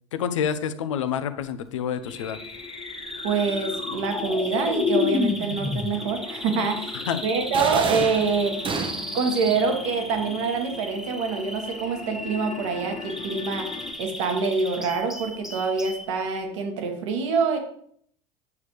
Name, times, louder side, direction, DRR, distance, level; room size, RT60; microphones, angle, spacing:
voice 1, 0.1-2.4 6.9-7.2, left 8 dB, 80° left, 12 dB, 0.6 m, -28 dB
sound 1, 2.0-13.9, left 5 dB, 40° left, 1.6 m, -33 dB
Bird vocalization bird call bird song, 2.1-16.1, equal, ahead, 1.2 m, -37 dB
voice 2, 3.2-7.0 7.2-8.7 9.1-13.7 14.0-17.6, right 4 dB, 70° right, 4 dB, 1.6 m, -25 dB
sound 2, 7.5-9.3, right 5 dB, 30° right, 0.8 m, -30 dB
8.3 x 6.6 x 3.2 m, 0.63 s
hypercardioid pair, 80°, 16 cm